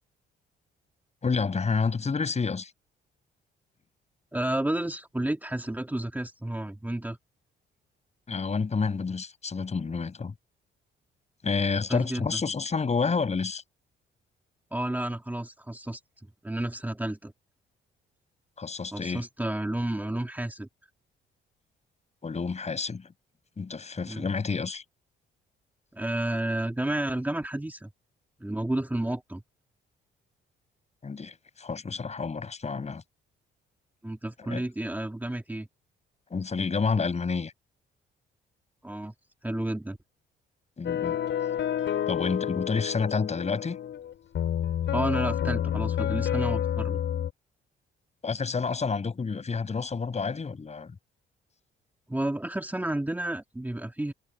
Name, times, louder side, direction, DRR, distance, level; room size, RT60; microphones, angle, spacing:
voice 1, 1.2-2.7 8.3-10.3 11.4-13.6 18.6-19.2 22.2-23.1 23.6-24.8 31.0-33.0 34.4-34.6 36.3-37.5 40.8-41.2 42.1-43.8 48.2-50.9, left 5 dB, 35° left, 6.1 m, -29 dB
voice 2, 4.3-7.2 11.9-12.3 14.7-16.0 16.4-17.3 18.9-20.7 24.1-24.3 25.9-27.9 28.4-29.4 34.0-35.7 38.8-39.1 39.4-40.0 44.9-47.0 52.1-54.1, right 1 dB, 10° right, 2.6 m, -31 dB
sound 1, 40.8-47.3, left 10 dB, 65° left, 6.0 m, -29 dB
cardioid pair, 90°, 20 cm